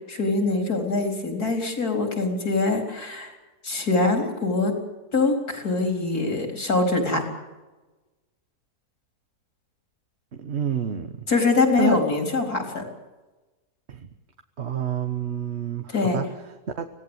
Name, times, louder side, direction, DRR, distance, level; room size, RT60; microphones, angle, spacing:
voice 1, 0.1-3.3 3.6-4.7 5.1-7.2 11.3-12.9 15.9-16.2, left 3 dB, 70° left, 3 dB, 4.6 m, -23 dB
voice 2, 10.4-11.3 11.8-12.0 13.9-14.1 14.6-16.9, right 6 dB, 45° right, 7 dB, 1.4 m, -28 dB
26.0 x 18.0 x 8.1 m, 1.2 s
omnidirectional pair, 1.7 m